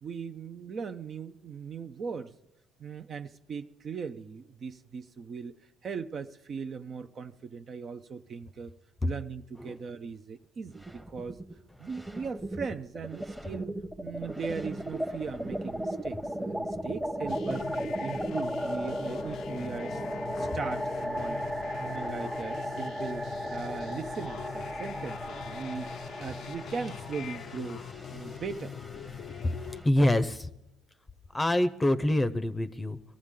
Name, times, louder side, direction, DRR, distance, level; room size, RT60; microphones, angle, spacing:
voice 1, 0.0-2.3 2.8-5.5 5.8-8.7 9.0-11.4 11.8-13.7 14.0-17.7 18.0-20.0 20.4-21.4 21.8-23.2 23.5-25.9 26.2-27.8 28.1-28.8, right 5 dB, 45° right, 7 dB, 0.6 m, -39 dB
sound 1, 10.7-11.5 11.8-29.9, equal, 5° right, 1.0 m, -36 dB
sound 2, 17.3-29.8, left 9 dB, 65° left, 0.5 m, -42 dB
voice 2, 29.8-30.5 31.3-33.0, left 1 dB, 15° left, 10 dB, 0.7 m, -25 dB
22.5 x 14.5 x 3.7 m, 0.84 s
supercardioid pair, 85°, 0 cm